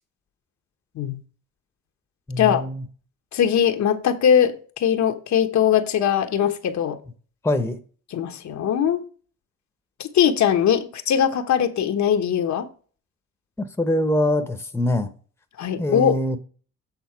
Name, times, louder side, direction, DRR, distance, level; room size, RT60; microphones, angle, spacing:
voice 1, 2.3-2.8 7.4-7.8 13.6-15.1 15.8-16.4, left 1 dB, 10° left, 1.0 m, -23 dB
voice 2, 3.3-7.0 8.1-9.0 10.0-12.7 15.6-16.2, left 9 dB, 65° left, 1.1 m, -21 dB
8.3 x 4.0 x 5.7 m
cardioid pair, 90°, 30 cm